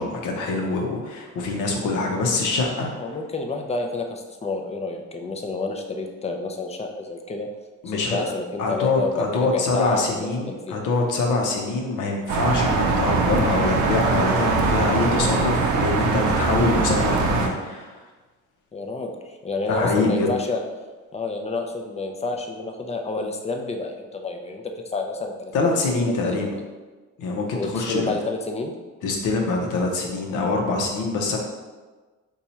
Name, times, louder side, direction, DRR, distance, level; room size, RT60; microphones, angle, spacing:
voice 1, 0.0-2.9 7.8-8.3 8.6-17.9 19.7-20.3 25.5-26.5 27.2-28.2 29.0-31.4, left 3 dB, 85° left, 1 dB, 0.7 m, -24 dB
voice 2, 3.0-7.5 7.9-10.8 18.7-20.6 21.1-26.6 27.5-28.7 31.3-31.4, left 3 dB, 20° left, 3 dB, 0.4 m, -29 dB
sound 1, 12.3-17.5, right 4 dB, 75° right, 0.5 m, -22 dB
2.8 x 2.3 x 4.2 m, 1.3 s
cardioid pair, 90°, 30 cm